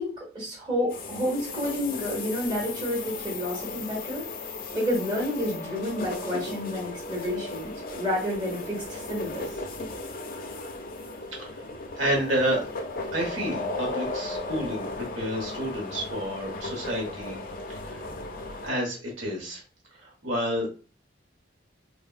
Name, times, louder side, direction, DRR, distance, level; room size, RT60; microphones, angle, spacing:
voice 1, 0.0-4.2 4.7-9.5, left 1 dB, 25° right, -2 dB, 1.0 m, -30 dB
sound 1, 0.9-18.7, left 2 dB, 45° left, 0.4 m, -36 dB
voice 2, 12.0-12.6 13.1-17.4 17.7-18.0 18.6-19.6 20.0-20.7, equal, 80° right, -1 dB, 1.0 m, -30 dB
3.3 x 2.2 x 2.4 m, 0.35 s
head